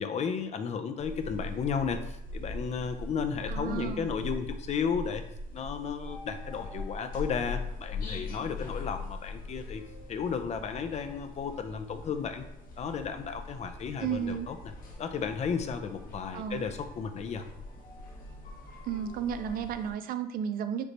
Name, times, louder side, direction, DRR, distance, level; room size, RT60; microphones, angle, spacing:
voice 1, 0.0-5.2 5.5-9.8 10.1-12.4 12.8-14.6 15.0-17.4, left 6 dB, 40° left, 8 dB, 0.5 m, -33 dB
sound 1, 1.0-19.9, left 2 dB, 55° left, 1.1 m, -41 dB
voice 2, 3.5-4.1 14.0-14.5 16.3-16.7 18.8-20.9, right 8 dB, 60° right, 10 dB, 0.4 m, -33 dB
5.1 x 3.2 x 2.9 m, 0.86 s
cardioid pair, 110°, 17 cm